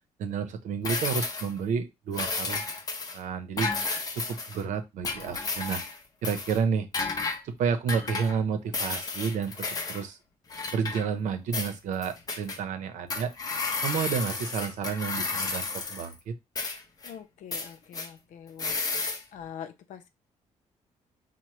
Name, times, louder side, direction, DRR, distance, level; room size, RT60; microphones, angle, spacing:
voice 1, 0.2-2.6 3.1-3.7 4.2-5.8 6.2-6.9 7.4-10.2 10.7-13.3 13.8-16.3, right 6 dB, 75° right, 0.7 m, -30 dB
sound 1, 0.8-1.6 2.1-3.2 3.6-4.6 5.0-6.0 6.2-6.6 6.9-7.4 7.9-8.4 8.7-10.0 10.5-11.3 11.5-12.6 13.1-16.1 16.6-17.1 17.5-18.1 18.6-19.2, left 4 dB, 30° left, 0.9 m, -32 dB
voice 2, 17.0-18.9 19.3-20.1, left 8 dB, 85° left, 0.7 m, -44 dB
5.8 x 2.2 x 3.1 m
cardioid pair, 165°, 13 cm